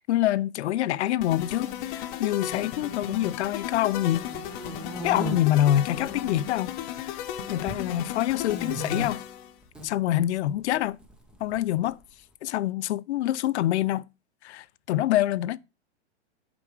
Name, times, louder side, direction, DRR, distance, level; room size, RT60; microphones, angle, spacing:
voice 1, 0.0-4.3 5.0-7.2 7.5-9.2 9.8-11.0 11.4-12.0 12.4-14.1 14.4-15.6, left 13 dB, 75° left, 0.5 m, -26 dB
sound 1, 1.2-9.5, left 10 dB, 45° left, 0.9 m, -35 dB
sound 2, 4.2-5.3 6.0-6.6 6.9-7.8 8.5-9.1 9.6-9.9 11.0-11.9, equal, 5° right, 0.6 m, -36 dB
6.0 x 4.9 x 3.2 m
hypercardioid pair, 135°, 34 cm